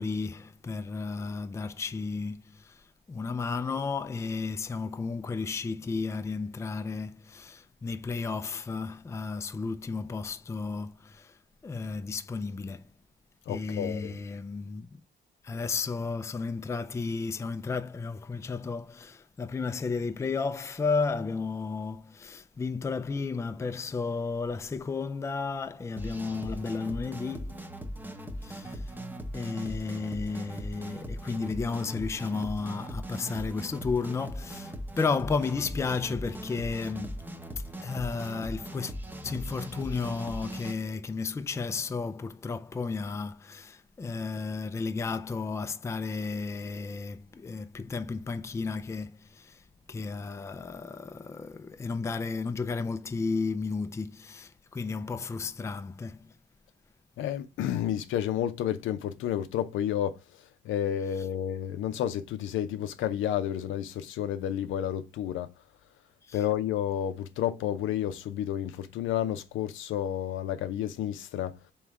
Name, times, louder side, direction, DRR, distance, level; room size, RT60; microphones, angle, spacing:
voice 1, 0.0-11.4 11.6-12.9 13.5-14.9 15.4-27.7 28.4-29.0 29.3-37.2 37.5-38.9 39.2-56.3 66.3-66.4, left 4 dB, 15° left, 0.4 m, -33 dB
voice 2, 13.5-14.2 57.2-60.2 60.6-65.5 66.3-71.6, left 10 dB, 80° left, 0.6 m, -31 dB
sound 1, 26.0-40.7, equal, 10° right, 0.7 m, -39 dB
3.5 x 3.0 x 4.6 m
cardioid pair, 90°, 20 cm